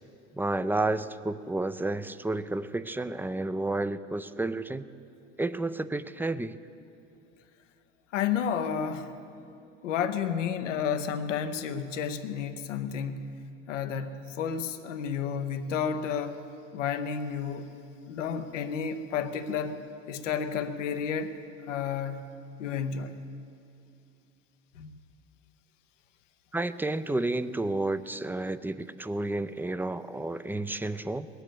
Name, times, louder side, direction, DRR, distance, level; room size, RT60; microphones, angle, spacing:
voice 1, 0.3-4.9 5.4-6.6 26.5-31.3, right 2 dB, 5° right, 13 dB, 0.4 m, -31 dB
voice 2, 8.1-9.1 9.8-13.4 13.7-16.4 16.7-17.7 18.1-19.8 20.1-21.4 21.7-22.3 22.6-23.2 24.7-24.9, left 7 dB, 80° left, 9 dB, 0.8 m, -31 dB
20.0 x 8.1 x 6.9 m, 2.6 s
hypercardioid pair, 70°, 37 cm